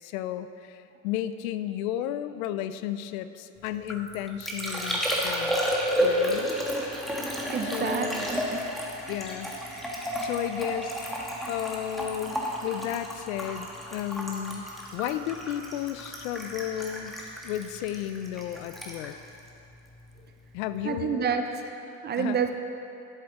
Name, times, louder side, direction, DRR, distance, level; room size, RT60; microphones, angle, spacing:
voice 1, 0.0-5.7 6.0-6.5 7.6-8.3 9.1-9.6 10.2-11.0 11.5-19.1 20.5-21.4 22.2-22.4, left 11 dB, 75° left, 12 dB, 0.6 m, -33 dB
Liquid, 3.7-20.3 20.5-21.1, equal, ahead, 1.4 m, -32 dB
voice 2, 7.5-8.1 8.5-8.6 20.8-22.6, right 7 dB, 25° right, 6 dB, 0.6 m, -29 dB
11.5 x 7.7 x 3.7 m, 2.8 s
supercardioid pair, 110°, 42 cm